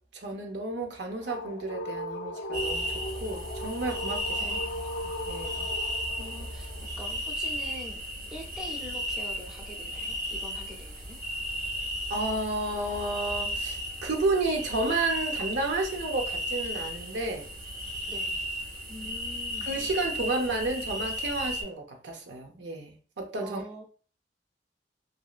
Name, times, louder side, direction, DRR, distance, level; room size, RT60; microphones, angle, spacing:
voice 1, 0.1-4.6 5.2-5.7 12.1-17.5 19.6-23.6, right 2 dB, 80° right, 0.7 m, -31 dB
sound 1, 0.8-6.9, left 1 dB, 80° left, 0.4 m, -37 dB
sound 2, 2.5-21.6, equal, 50° right, 0.8 m, -35 dB
voice 2, 4.4-4.9 6.2-8.0 8.3-11.2 18.1-18.5 18.9-19.7 23.4-23.8, equal, 5° right, 0.5 m, -44 dB
3.0 x 2.6 x 2.4 m
head